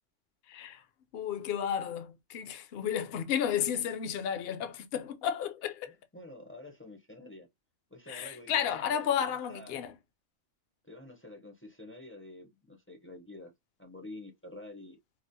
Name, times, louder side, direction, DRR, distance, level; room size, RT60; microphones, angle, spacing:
voice 1, 0.5-0.8 1.1-5.9 8.1-9.9, left 9 dB, 60° left, 0.8 m, -32 dB
voice 2, 6.1-7.5 7.9-9.8 10.8-13.5 13.8-15.0, left 1 dB, 15° left, 0.5 m, -48 dB
4.2 x 2.0 x 2.6 m
omnidirectional pair, 1.3 m